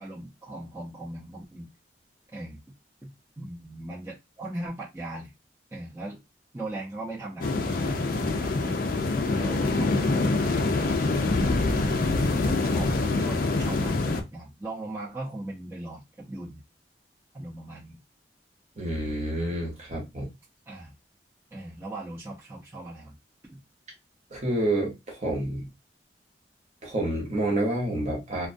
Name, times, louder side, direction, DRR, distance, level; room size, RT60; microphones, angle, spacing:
voice 1, 0.0-1.7 2.3-2.6 3.0-5.3 5.7-6.2 6.5-8.9 9.3-10.0 11.3-16.6 17.3-18.0 20.7-20.9 21.5-23.1 23.5-23.6, right 1 dB, 15° right, 0.6 m, -39 dB
sound 1, 7.4-14.2, left 3 dB, 55° left, 0.4 m, -25 dB
voice 2, 18.8-20.3 24.3-25.7 26.8-28.5, right 1 dB, 40° right, 1.0 m, -28 dB
2.3 x 2.2 x 2.5 m
head